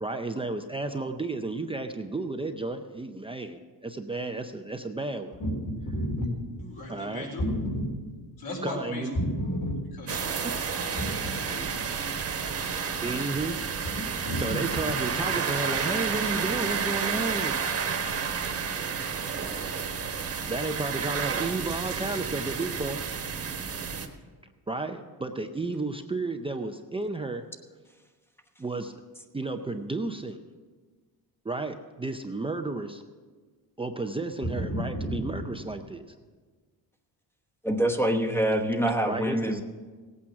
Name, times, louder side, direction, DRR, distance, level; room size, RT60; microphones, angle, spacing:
voice 1, 0.0-5.4 6.9-7.3 8.6-9.2 10.4-10.5 13.0-13.6 14.4-17.9 20.5-23.0 24.7-27.4 28.6-28.9 29.3-30.4 31.4-33.0 33.8-36.1 39.1-39.6, right 2 dB, 15° right, 5 dB, 0.5 m, -32 dB
voice 2, 5.9-6.3 6.6-7.9 8.4-10.3 11.0-11.9 13.9-14.5 34.6-35.2, equal, 55° left, 0 dB, 3.9 m, -32 dB
sound 1, 10.1-24.1, right 6 dB, 35° right, 1.3 m, -31 dB
voice 3, 37.6-39.6, right 1 dB, 5° left, 5 dB, 1.0 m, -25 dB
17.5 x 8.7 x 5.8 m, 1.4 s
cardioid pair, 145°, 42 cm